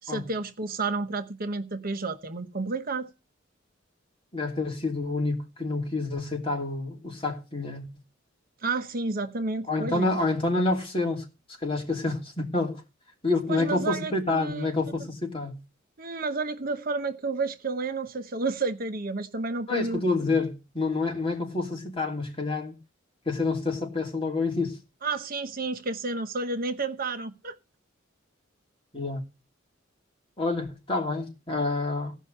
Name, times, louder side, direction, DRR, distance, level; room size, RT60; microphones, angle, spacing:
voice 1, 0.0-3.1 8.6-10.2 13.5-14.7 16.0-20.0 25.0-27.6, right 3 dB, 45° right, 0.9 m, -31 dB
voice 2, 4.3-7.9 9.7-11.3 11.6-12.8 13.2-15.6 19.7-22.8 23.3-24.8 28.9-29.2 30.4-32.2, left 3 dB, 30° left, 2.8 m, -28 dB
16.5 x 5.5 x 7.8 m
head